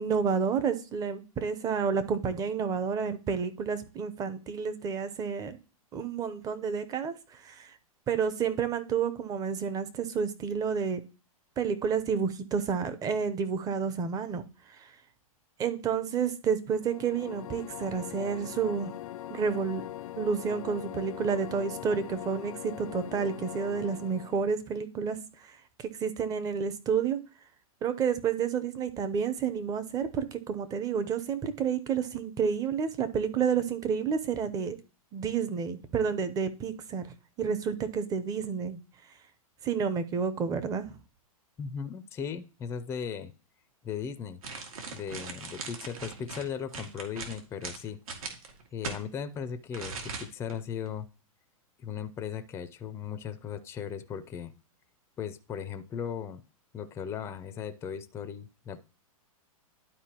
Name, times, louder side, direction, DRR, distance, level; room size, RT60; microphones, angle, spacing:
voice 1, 0.0-5.6 5.9-7.1 7.4-7.7 8.1-11.0 11.6-14.4 15.6-18.9 19.3-19.8 20.2-25.2 26.0-27.2 27.8-34.8 35.1-38.8 39.6-41.0, right 6 dB, 20° right, 11 dB, 0.7 m, -30 dB
sound 1, 16.7-24.6, left 13 dB, 65° left, 0.4 m, -42 dB
voice 2, 41.6-43.3 43.8-44.4 44.9-48.0 48.7-51.1 51.8-54.6 55.2-56.4 56.7-58.8, left 7 dB, 15° left, 10 dB, 0.5 m, -37 dB
sound 2, 44.4-49.0 49.7-50.5 50.9-51.0, right 4 dB, 75° right, 2.0 m, -39 dB
11.5 x 4.6 x 2.9 m, 0.34 s
hypercardioid pair, 135°, 19 cm